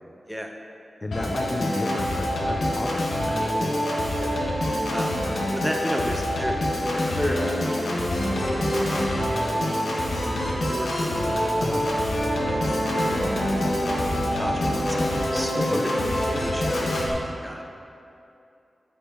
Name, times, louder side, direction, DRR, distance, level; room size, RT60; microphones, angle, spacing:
voice 1, 1.0-3.8 11.6-11.9 15.5-15.8, left 2 dB, 35° left, 3 dB, 0.4 m, -33 dB
Organ, 1.1-17.1, equal, 90° left, 1.0 m, -25 dB
voice 2, 4.7-5.2 5.5-6.6 6.9-7.7 8.2-8.7 9.9-11.7 12.4-13.1 14.3-15.9 16.2-17.6, equal, 5° right, 2 dB, 0.7 m, -33 dB
9.7 x 6.7 x 2.6 m, 2.7 s
wide cardioid pair, 65°, 0 cm